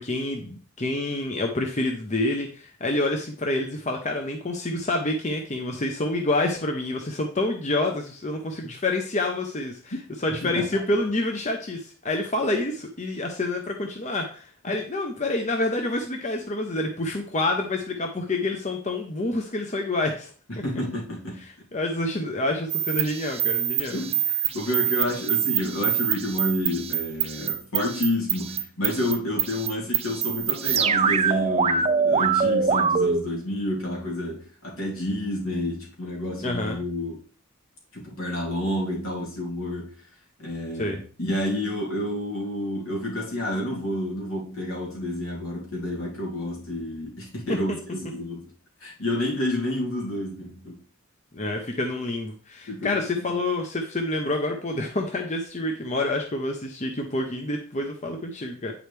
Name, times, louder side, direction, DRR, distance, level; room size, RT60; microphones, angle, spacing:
voice 1, 0.0-20.3 21.4-24.0 36.4-36.8 40.8-41.0 47.5-47.6 51.3-58.7, left 2 dB, 35° left, 0.8 m, -28 dB
voice 2, 10.4-10.8 14.7-14.8 20.5-21.4 23.9-37.2 37.9-39.9 40.4-48.5 48.8-50.8 52.7-53.4, left 1 dB, 80° left, 2.8 m, -29 dB
sound 1, 22.7-33.2, right 7 dB, 30° right, 0.4 m, -24 dB
8.9 x 5.0 x 3.4 m
head